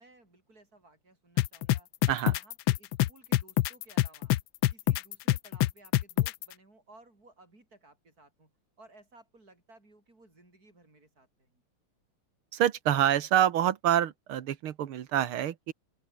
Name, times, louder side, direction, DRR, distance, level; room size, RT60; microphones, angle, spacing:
voice 1, 0.0-1.9 2.3-4.3 4.7-11.6, right 2 dB, 40° right, 7.4 m, -58 dB
sound 1, 1.4-6.5, left 15 dB, 75° left, 1.4 m, -25 dB
voice 2, 12.5-15.7, right 11 dB, 80° right, 2.1 m, -26 dB
open air
omnidirectional pair, 2.3 m